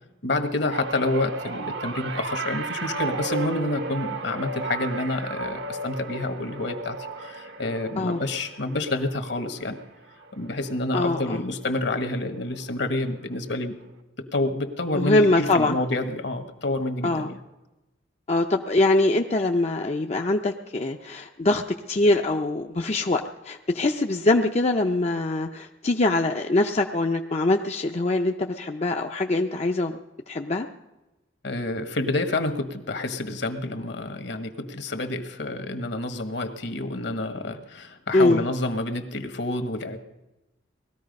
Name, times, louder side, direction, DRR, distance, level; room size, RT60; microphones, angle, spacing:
voice 1, 0.2-9.8 10.3-13.8 14.2-17.4 31.4-40.0, left 2 dB, 65° left, 8 dB, 1.5 m, -28 dB
sound 1, 0.6-11.1 11.4-11.8 12.9-13.0, right 3 dB, 60° right, 1.0 m, -34 dB
voice 2, 10.9-11.4 15.0-15.8 17.0-17.3 18.3-21.6 21.9-29.9 30.3-30.7 38.1-38.4, left 2 dB, 35° left, 3 dB, 0.6 m, -23 dB
19.5 x 14.0 x 5.3 m, 1.0 s
head